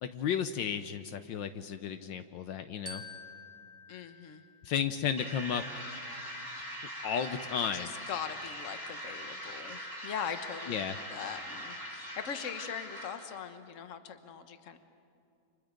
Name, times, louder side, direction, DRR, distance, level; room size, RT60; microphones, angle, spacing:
voice 1, 0.0-3.0 4.6-5.6 7.0-7.9 10.7-11.0, left 8 dB, 75° left, 10 dB, 1.4 m, -33 dB
Glockenspiel, 2.9-5.3, left 3 dB, 10° right, 1.7 m, -49 dB
voice 2, 3.9-4.4 7.7-14.8, left 7 dB, 45° left, 9 dB, 1.3 m, -41 dB
sound 1, 5.2-13.4, equal, 10° left, 3.8 m, -42 dB
29.5 x 26.5 x 5.2 m, 2.6 s
omnidirectional pair, 2.1 m